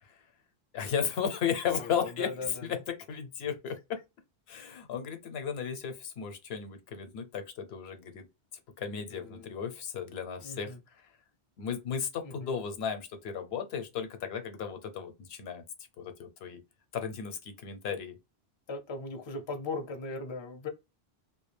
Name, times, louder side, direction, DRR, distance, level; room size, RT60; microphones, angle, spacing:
voice 1, 0.7-2.3 3.1-4.0 4.5-8.3 8.8-10.7 11.6-15.6 16.0-16.6 16.9-18.1, left 7 dB, 80° left, 0.9 m, -35 dB
voice 2, 1.8-2.8 9.1-9.5 10.4-10.8 12.2-12.5 18.7-20.7, left 3 dB, 40° left, 0.4 m, -39 dB
2.2 x 2.1 x 3.2 m
omnidirectional pair, 1.1 m